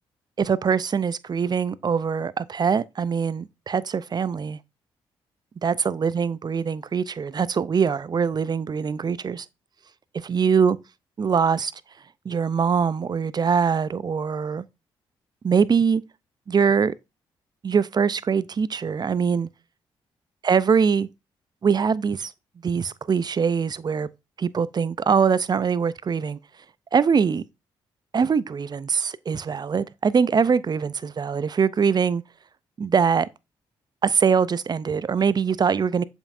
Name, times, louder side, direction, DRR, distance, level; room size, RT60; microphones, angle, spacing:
voice 1, 0.4-4.6 5.6-9.5 10.1-10.8 11.2-11.7 12.3-14.6 15.4-16.0 16.5-16.9 17.6-19.5 20.4-21.1 21.6-22.3 22.6-24.1 24.4-26.4 26.9-27.4 28.1-32.2 32.8-33.3 34.0-36.0, right 6 dB, 40° right, 0.5 m, -23 dB
7.2 x 5.4 x 2.6 m
supercardioid pair, 55°, 11 cm